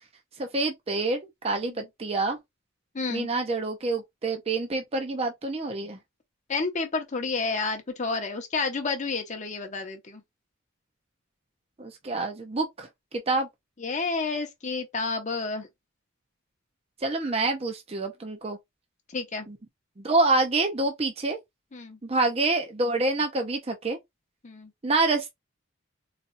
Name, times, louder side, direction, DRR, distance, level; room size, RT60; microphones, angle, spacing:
voice 1, 0.4-1.2 1.4-2.4 3.1-6.0 11.8-13.5 17.0-18.6 19.5-19.6 20.0-21.4 22.0-24.0 24.8-25.3, right 3 dB, 30° right, 0.5 m, -27 dB
voice 2, 2.9-3.3 6.5-10.2 13.8-15.7 19.1-19.5 21.7-22.0 24.4-24.7, left 4 dB, 35° left, 0.7 m, -30 dB
4.1 x 2.3 x 2.5 m
head